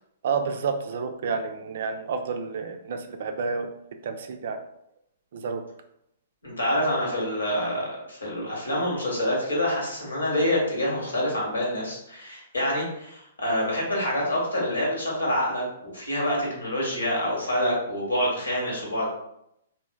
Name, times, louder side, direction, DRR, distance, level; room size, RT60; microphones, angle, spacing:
voice 1, 0.2-3.7 4.0-4.6 5.3-5.6, right 5 dB, 60° right, 7 dB, 0.4 m, -30 dB
voice 2, 6.4-19.1, left 1 dB, 80° left, -3 dB, 1.3 m, -27 dB
3.2 x 2.5 x 2.3 m, 0.78 s
figure-of-eight pair, 120°, 0 cm